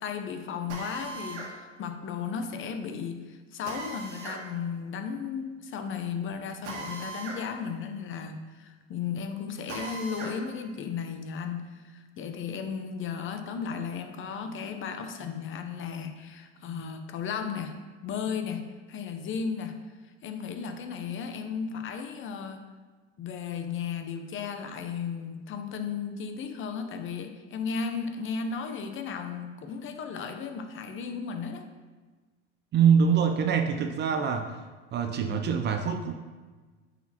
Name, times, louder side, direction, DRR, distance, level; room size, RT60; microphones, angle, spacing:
voice 1, 0.0-17.8 18.0-18.6 18.9-19.7 20.0-22.6 23.2-31.7, left 6 dB, 35° left, 6 dB, 0.7 m, -35 dB
Drill, 0.7-1.5 3.6-4.4 6.6-7.4 7.8-7.9 9.7-10.4, right 3 dB, 90° right, 1.6 m, -38 dB
voice 2, 32.7-34.6 34.9-36.1, right 7 dB, 30° right, 6 dB, 0.5 m, -24 dB
9.0 x 4.1 x 2.9 m, 1.4 s
supercardioid pair, 105°, 34 cm